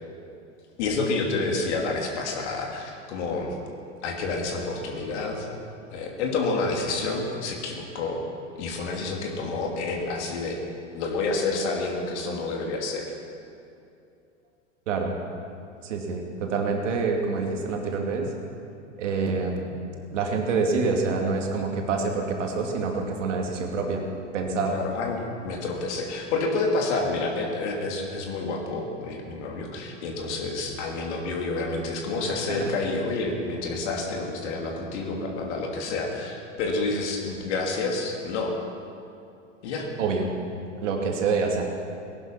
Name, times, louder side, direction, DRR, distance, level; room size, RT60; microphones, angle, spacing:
voice 1, 0.8-3.6 4.0-5.5 5.9-8.2 8.5-10.6 10.9-13.1 24.7-38.5 39.6-39.9, left 3 dB, 60° left, 1 dB, 2.9 m, -29 dB
voice 2, 15.8-18.3 19.0-19.8 20.1-24.0 24.3-24.8 32.6-32.7 40.0-40.3 40.8-41.7, right 4 dB, 70° right, 2 dB, 2.5 m, -26 dB
18.0 x 11.0 x 5.9 m, 2.6 s
hypercardioid pair, 100°, 38 cm